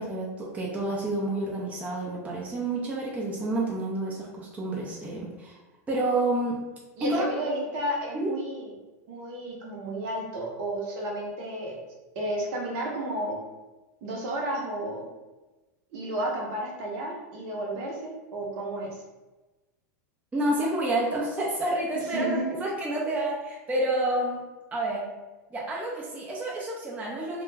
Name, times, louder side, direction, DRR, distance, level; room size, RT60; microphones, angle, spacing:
voice 1, 0.0-5.6 5.9-6.6 7.0-7.3 8.1-8.3 20.3-24.4 24.7-25.1 25.5-27.4, right 1 dB, 15° right, -3 dB, 0.5 m, -29 dB
voice 2, 7.0-8.7 9.1-11.8 12.1-13.4 14.0-15.1 15.9-19.0 22.1-22.6, right 1 dB, 55° right, -1 dB, 0.8 m, -32 dB
2.2 x 2.2 x 3.2 m, 1.1 s
hypercardioid pair, 115°, 9 cm